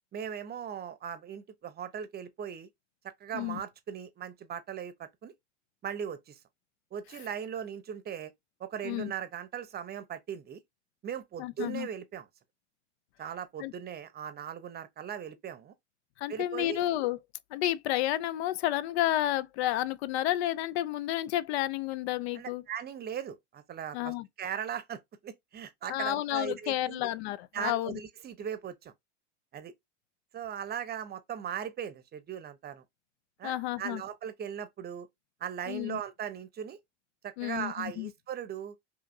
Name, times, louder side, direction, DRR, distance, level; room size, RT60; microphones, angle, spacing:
voice 1, 0.1-2.7 3.2-5.3 5.8-6.4 6.9-8.3 8.6-10.6 11.0-12.3 13.2-15.7 16.3-16.8 22.4-27.1 27.5-28.9 29.5-29.7 30.3-32.8 33.4-35.1 35.4-36.8 37.2-38.7, right 8 dB, 25° right, 0.7 m, -38 dB
voice 2, 11.4-11.9 13.6-13.7 16.2-17.2 17.5-22.6 23.9-24.3 25.9-28.0 33.4-34.0 35.7-36.0 37.4-38.1, left 14 dB, 60° left, 0.5 m, -31 dB
4.9 x 2.7 x 2.6 m
hypercardioid pair, 95°, 36 cm